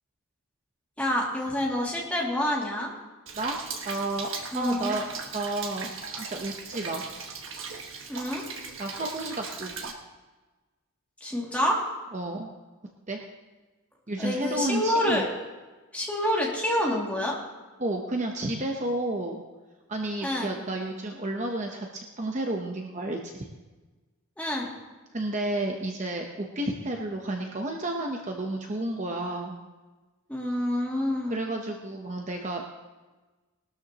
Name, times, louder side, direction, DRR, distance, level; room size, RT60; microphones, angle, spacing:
voice 1, 1.0-2.9 4.5-4.9 8.1-8.4 11.2-11.8 14.2-15.3 15.9-17.4 20.2-20.5 24.4-24.7 30.3-31.4, left 1 dB, 5° left, -4 dB, 2.4 m, -27 dB
Rain, 3.3-9.9, right 5 dB, 60° right, 1.6 m, -38 dB
voice 2, 3.8-5.1 5.3-7.0 8.8-9.9 12.1-12.5 13.1-13.2 14.1-15.2 17.8-19.4 19.9-23.5 25.1-29.6 31.3-32.6, right 1 dB, 35° right, 2 dB, 0.9 m, -31 dB
19.5 x 13.0 x 3.0 m, 1.2 s
head